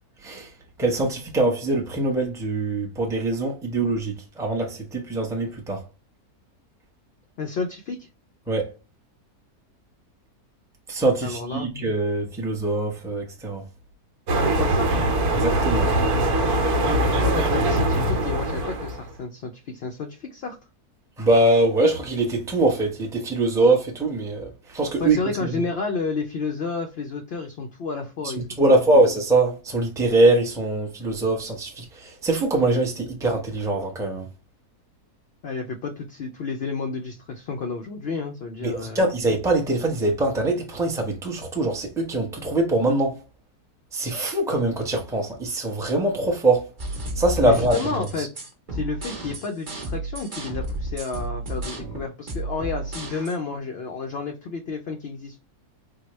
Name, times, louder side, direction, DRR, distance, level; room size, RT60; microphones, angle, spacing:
voice 1, 0.8-5.8 8.5-8.7 10.9-13.6 15.3-15.9 21.2-25.5 28.2-34.3 38.6-43.2 43.9-46.7 47.2-47.8 48.2-48.3, right 2 dB, 5° right, 0.5 m, -23 dB
voice 2, 7.4-8.1 11.2-11.7 14.3-15.1 16.7-20.6 25.0-28.4 35.4-39.0 47.4-48.3 48.7-55.4, left 4 dB, 70° left, 0.6 m, -31 dB
sound 1, 14.3-19.1, right 1 dB, 75° right, 1.2 m, -22 dB
sound 2, 46.8-53.3, right 1 dB, 35° right, 1.0 m, -32 dB
4.6 x 2.2 x 3.0 m
omnidirectional pair, 1.6 m